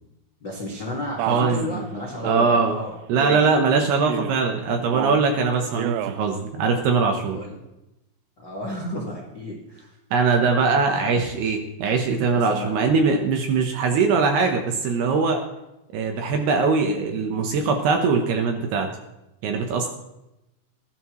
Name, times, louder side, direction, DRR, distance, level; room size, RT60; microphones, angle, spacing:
voice 1, 0.4-3.0 3.8-3.9 7.3-7.6 8.4-10.0 10.7-11.1 12.3-12.7, left 1 dB, 65° left, -2 dB, 1.0 m, -33 dB
voice 2, 1.2-1.8 2.2-2.8 3.1-7.4 10.1-15.4 15.9-18.9 19.4-19.9, right 4 dB, 70° right, 4 dB, 2.7 m, -21 dB
Male speech man speaking, 1.2-1.7 2.2-2.6 3.2-3.6 4.0-4.5 4.9-5.3 5.7-6.2, right 13 dB, 85° right, 3.2 m, -29 dB
19.0 x 12.0 x 3.2 m, 0.92 s
omnidirectional pair, 5.7 m